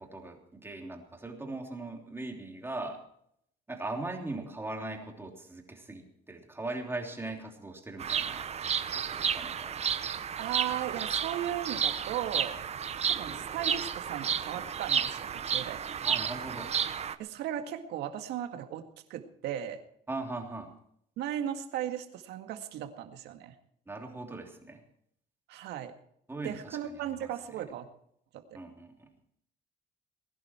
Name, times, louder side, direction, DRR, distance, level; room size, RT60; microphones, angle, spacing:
voice 1, 0.0-3.0 3.7-8.5 8.9-9.7 13.1-13.4 16.0-16.7 20.1-20.7 23.9-24.8 26.3-27.3 28.5-29.1, right 2 dB, 15° right, 2 dB, 3.2 m, -40 dB
Bird vocalization bird call bird song, 8.0-17.1, right 7 dB, 40° right, 0.9 m, -32 dB
voice 2, 10.4-12.6 13.0-15.8 17.2-18.8 19.1-19.8 21.2-23.5 25.5-25.9 26.4-27.9 28.3-28.6, right 10 dB, 85° right, 7 dB, 2.0 m, -36 dB
20.5 x 11.5 x 4.5 m, 0.69 s
cardioid pair, 110°, 17 cm